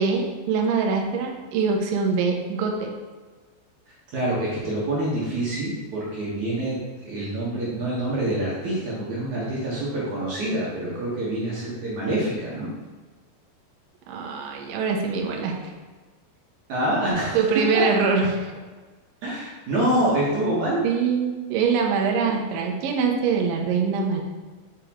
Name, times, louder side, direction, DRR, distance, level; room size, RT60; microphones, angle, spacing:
voice 1, 0.0-2.9 14.1-15.6 17.3-18.5 20.8-24.2, right 5 dB, 85° right, 1 dB, 1.9 m, -23 dB
voice 2, 4.1-6.8 7.0-12.7 16.7-17.9 19.2-20.9 22.2-22.6 23.8-24.1, right 1 dB, 65° right, -7 dB, 1.9 m, -26 dB
8.2 x 4.9 x 2.9 m, 1.4 s
omnidirectional pair, 5.0 m